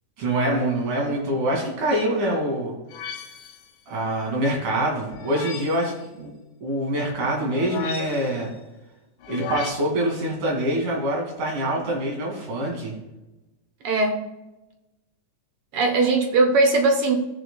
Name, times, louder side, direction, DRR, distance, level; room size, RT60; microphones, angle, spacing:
voice 1, 0.2-2.7 3.9-6.3 6.6-8.5 9.3-12.9, right 1 dB, 85° right, -2 dB, 4.0 m, -25 dB
sound 1, 2.9-3.7 5.1-5.9 7.5-8.4 9.2-9.7, left 7 dB, 70° left, 1.8 m, -35 dB
voice 2, 13.8-14.2 15.7-17.1, right 3 dB, 60° right, 4 dB, 1.7 m, -19 dB
17.0 x 6.9 x 2.3 m, 1.0 s
omnidirectional pair, 3.5 m